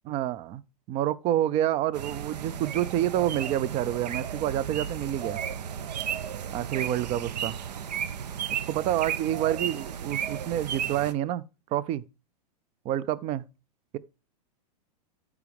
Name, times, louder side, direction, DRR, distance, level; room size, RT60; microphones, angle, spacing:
voice 1, 0.1-0.6 0.9-5.4 6.5-7.6 8.5-11.4 11.7-12.0 12.8-13.4, right 12 dB, 30° right, 0.4 m, -28 dB
sound 1, 1.9-11.1, right 8 dB, 85° right, 0.7 m, -34 dB
12.5 x 4.8 x 3.4 m
hypercardioid pair, 120°, 21 cm